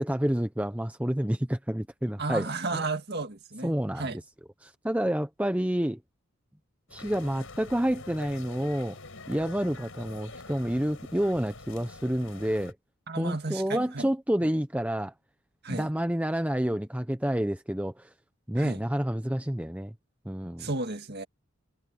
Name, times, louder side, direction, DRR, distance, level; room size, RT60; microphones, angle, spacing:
voice 1, 0.0-2.8 3.6-4.1 4.6-6.0 6.9-9.0 9.3-12.7 13.2-15.1 15.7-18.1 18.5-19.9 20.2-20.7, equal, 5° right, 0.8 m, -29 dB
voice 2, 2.2-4.2 13.1-14.1 14.4-14.5 15.6-15.9 18.6-18.8 20.6-21.2, right 3 dB, 45° right, 2.0 m, -33 dB
sound 1, 6.9-12.7, left 3 dB, 65° left, 5.5 m, -45 dB
head